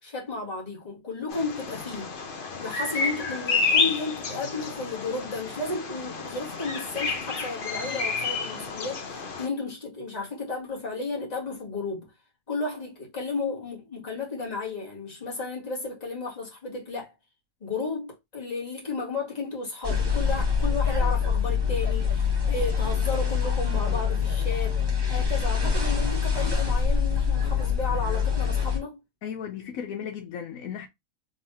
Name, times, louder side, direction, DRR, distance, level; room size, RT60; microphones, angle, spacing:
voice 1, 0.0-2.1 2.6-12.1 12.5-17.1 17.6-24.8 25.1-29.0, left 3 dB, 30° left, 1.6 m, -33 dB
Bird vocalization bird call bird song, 1.3-9.5, left 4 dB, 45° left, 0.8 m, -30 dB
sound 1, 19.8-28.8, left 6 dB, 15° right, 1.6 m, -25 dB
voice 2, 29.2-30.9, left 8 dB, 75° left, 1.0 m, -35 dB
3.7 x 3.3 x 2.7 m
omnidirectional pair, 1.5 m